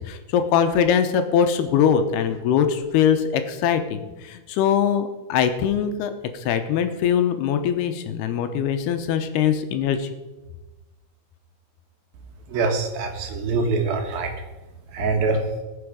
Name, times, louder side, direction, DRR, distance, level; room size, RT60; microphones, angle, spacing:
voice 1, 0.0-10.1, left 8 dB, 85° left, 8 dB, 2.9 m, -22 dB
voice 2, 12.5-14.3 14.9-15.4, right 4 dB, 70° right, 4 dB, 3.2 m, -24 dB
20.0 x 7.2 x 5.1 m, 1.1 s
omnidirectional pair, 4.6 m